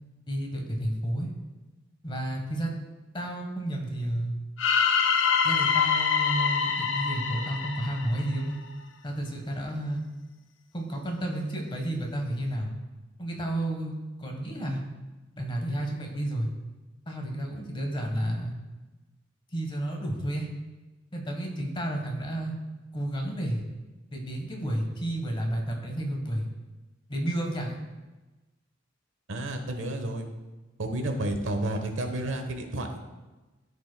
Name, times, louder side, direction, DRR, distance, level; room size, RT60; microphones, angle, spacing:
voice 1, 0.3-1.3 2.0-2.7 3.1-4.3 5.4-8.6 9.0-10.0 10.7-12.7 13.2-13.9 14.2-14.8 15.4-16.5 17.1-18.5 19.5-20.5 21.1-22.5 22.9-23.6 24.1-26.5 27.1-27.8, right 1 dB, 25° left, 2 dB, 1.3 m, -31 dB
sound 1, 4.6-8.7, left 6 dB, 70° left, 0.6 m, -25 dB
voice 2, 29.3-30.3 30.8-33.0, right 1 dB, 90° right, 5 dB, 1.0 m, -31 dB
13.5 x 5.3 x 2.2 m, 1.2 s
head